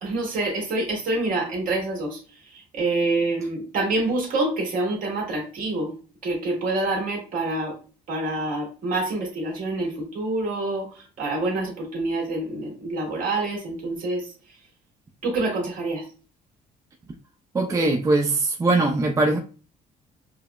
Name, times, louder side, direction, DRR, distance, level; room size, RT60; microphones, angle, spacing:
voice 1, 0.0-2.2 2.5-5.9 6.2-7.8 8.1-14.3 15.2-16.0, right 2 dB, 55° right, 1.6 m, -27 dB
voice 2, 17.5-19.4, right 2 dB, 20° right, 0.4 m, -21 dB
4.8 x 2.0 x 2.3 m
cardioid pair, 110°, 17 cm